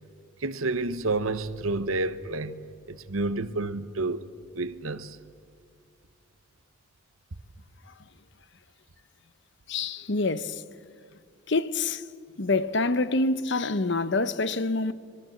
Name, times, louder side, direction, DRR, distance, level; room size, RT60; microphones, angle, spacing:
voice 1, 0.4-2.6 2.9-4.3 4.5-5.2, right 2 dB, 80° right, 1.0 m, -29 dB
voice 2, 9.7-10.6 11.5-12.0 12.4-14.9, left 3 dB, 55° left, 0.8 m, -26 dB
25.0 x 23.0 x 7.8 m
head